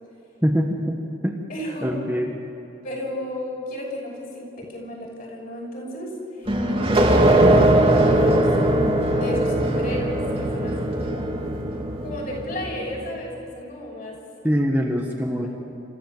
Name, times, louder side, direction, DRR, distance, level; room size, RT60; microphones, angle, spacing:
voice 1, 0.4-1.0 1.2-1.4 1.8-2.4 14.4-15.5, equal, 10° right, 0 dB, 1.3 m, -23 dB
voice 2, 1.5-2.0 2.8-6.1 6.4-11.4 12.0-14.2, left 1 dB, 45° left, -2 dB, 6.2 m, -33 dB
sound 1, 6.5-12.8, right 1 dB, 30° right, 2.0 m, -20 dB
27.5 x 15.0 x 7.4 m, 2.9 s
head